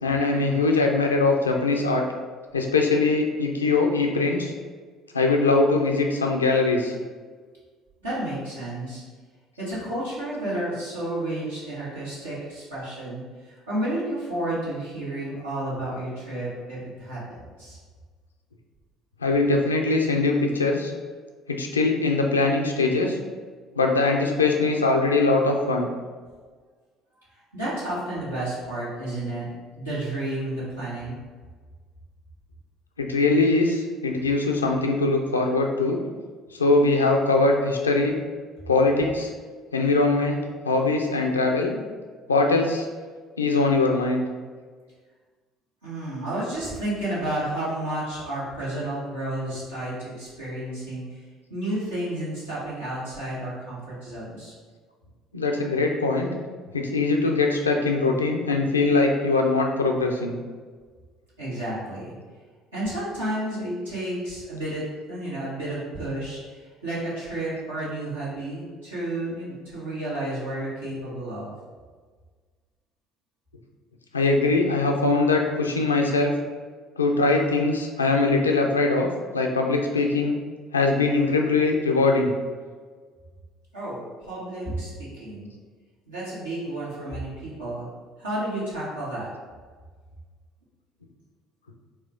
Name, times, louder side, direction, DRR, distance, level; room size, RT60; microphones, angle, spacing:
voice 1, 0.0-2.1 2.5-4.5 5.1-6.9 19.2-20.9 21.5-23.2 23.8-25.9 33.0-36.0 36.5-38.1 38.7-39.3 39.7-41.7 42.3-42.9 43.4-44.2 55.3-56.3 56.7-60.3 74.1-76.3 77.0-80.4 80.7-82.3, left 3 dB, 90° left, 2 dB, 0.4 m, -22 dB
voice 2, 8.0-9.0 9.6-17.8 27.3-31.2 45.8-51.2 51.5-54.5 61.4-62.1 62.7-71.5 83.7-85.5 86.1-87.9 88.2-89.3, right 1 dB, 85° right, -9 dB, 1.5 m, -31 dB
4.3 x 2.4 x 3.6 m, 1.5 s
figure-of-eight pair, 55°, 0 cm